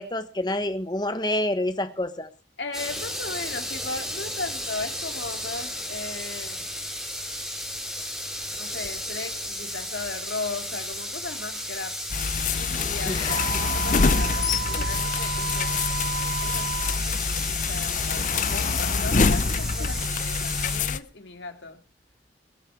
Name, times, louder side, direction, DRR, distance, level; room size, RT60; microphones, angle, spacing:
voice 1, 0.0-2.3 13.1-13.5, left 1 dB, 25° left, 1.2 m, -28 dB
voice 2, 2.6-6.7 8.5-12.0 12.5-15.8 16.4-21.8, left 3 dB, 90° left, 2.3 m, -37 dB
sound 1, 2.7-20.8, equal, 5° right, 2.7 m, -34 dB
sound 2, 12.1-21.0, left 5 dB, 45° left, 0.6 m, -25 dB
Wind instrument woodwind instrument, 13.3-17.0, right 7 dB, 80° right, 0.7 m, -33 dB
21.5 x 7.7 x 4.7 m
head